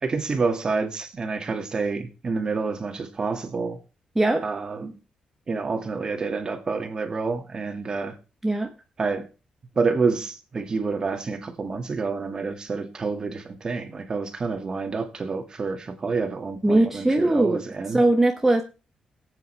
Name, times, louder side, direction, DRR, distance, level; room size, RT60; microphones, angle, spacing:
voice 1, 0.0-3.8 4.4-4.9 5.5-8.1 9.0-9.3 9.8-18.0, right 4 dB, 35° right, 2.1 m, -28 dB
voice 2, 16.6-17.6 17.9-18.6, right 2 dB, 10° right, 1.0 m, -20 dB
19.0 x 8.4 x 3.3 m
cardioid pair, 110°, 2 cm